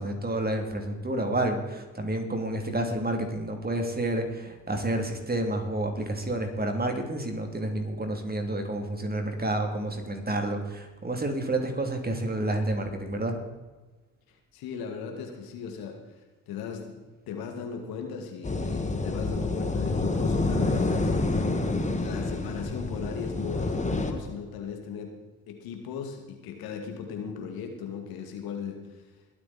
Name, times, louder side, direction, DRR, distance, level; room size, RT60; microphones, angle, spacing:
voice 1, 0.0-13.3, right 1 dB, 25° right, 4 dB, 3.2 m, -29 dB
voice 2, 14.5-16.2 16.5-17.0 17.3-21.1 22.0-25.1 25.5-29.0, left 6 dB, 70° left, 3 dB, 2.4 m, -37 dB
sound 1, 18.4-24.1, left 2 dB, 20° left, 2.0 m, -28 dB
21.5 x 8.7 x 4.3 m, 1.2 s
hypercardioid pair, 50°, 37 cm